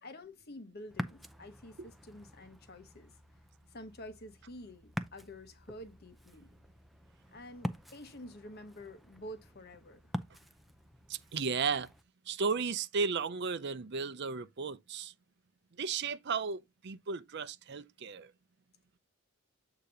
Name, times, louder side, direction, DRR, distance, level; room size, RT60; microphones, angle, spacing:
voice 1, 0.0-3.2 3.7-6.5 7.3-10.1, left 1 dB, 50° left, 1.1 m, -49 dB
Ocean, 0.9-12.0, equal, ahead, 0.5 m, -45 dB
voice 2, 11.1-11.9 12.3-15.1 15.8-18.3, right 5 dB, 55° right, 0.5 m, -34 dB
8.3 x 2.9 x 5.0 m
head